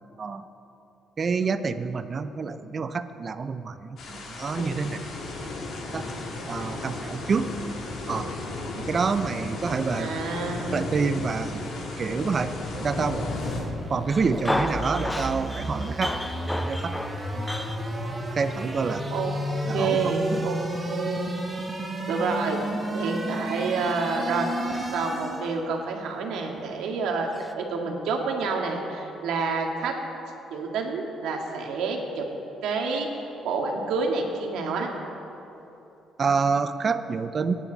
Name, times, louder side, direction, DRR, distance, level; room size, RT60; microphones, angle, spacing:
voice 1, 1.2-5.0 5.9-6.0 6.5-7.5 8.1-8.3 8.8-10.1 10.7-11.7 12.0-13.3 13.9-16.1 16.7-17.0 17.3-17.5 18.3-19.1 19.7-20.1 36.2-37.5, right 5 dB, 35° right, 11 dB, 0.6 m, -27 dB
sound 1, 4.0-13.6, left 2 dB, 60° left, 2.8 m, -34 dB
voice 2, 9.9-10.8 19.1-19.4 19.7-20.6 20.9-21.7 22.1-22.6 22.9-24.5 24.9-27.3 27.6-29.9 30.5-32.3 32.6-33.1 33.4-34.9, right 4 dB, 85° right, 1 dB, 1.9 m, -28 dB
Male speech man speaking, 12.9-13.7 14.1-18.3 20.3-20.6 20.9-21.0 24.7-25.1 27.3-27.5, left 1 dB, 5° left, 0.6 m, -33 dB
sound 2, 13.5-25.6, right 1 dB, 20° right, 1.8 m, -32 dB
22.5 x 10.0 x 4.1 m, 3.0 s
cardioid pair, 125°, 0 cm